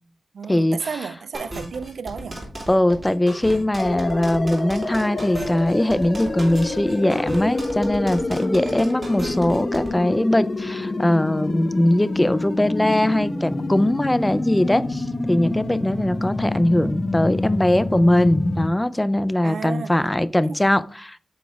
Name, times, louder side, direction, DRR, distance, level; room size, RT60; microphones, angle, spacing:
voice 1, 0.3-2.5 19.4-19.9 20.4-20.6, right 6 dB, 85° right, 0.3 m, -32 dB
sound 1, 1.3-9.9, right 1 dB, 30° right, 2.4 m, -35 dB
voice 2, 2.7-21.2, left 1 dB, 10° left, 0.3 m, -20 dB
sound 2, 3.8-18.7, left 2 dB, 30° left, 0.9 m, -27 dB
8.2 x 4.2 x 3.4 m
wide cardioid pair, 135°, 0 cm